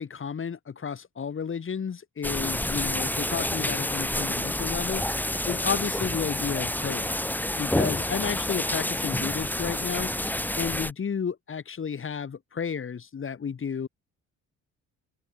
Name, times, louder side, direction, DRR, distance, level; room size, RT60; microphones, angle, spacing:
voice 1, 0.0-7.2 7.6-13.9, left 6 dB, 45° left, 3.7 m, -32 dB
sound 1, 2.2-10.9, left 1 dB, 5° left, 2.7 m, -29 dB
open air
cardioid pair, 90°, 30 cm